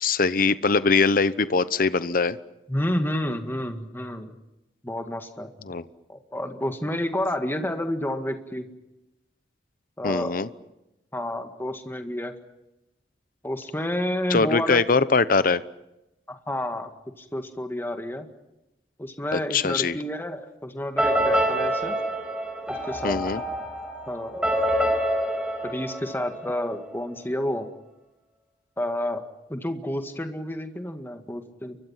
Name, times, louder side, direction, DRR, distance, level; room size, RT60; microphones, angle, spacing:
voice 1, 0.0-2.4 5.7-5.8 10.0-10.5 14.3-15.6 19.3-20.0 23.0-23.4, left 4 dB, 50° left, 15 dB, 0.9 m, -22 dB
voice 2, 2.7-4.3 4.8-5.5 6.1-8.7 10.0-10.4 11.1-12.4 13.4-14.8 16.3-16.9 17.2-18.3 19.0-22.0 22.7-23.2 24.1-24.5 25.6-27.7 28.8-29.2 29.5-31.8, left 1 dB, 15° left, 6 dB, 1.9 m, -30 dB
sound 1, 21.0-26.7, equal, 5° right, 5.6 m, -26 dB
30.0 x 24.0 x 5.9 m, 0.92 s
head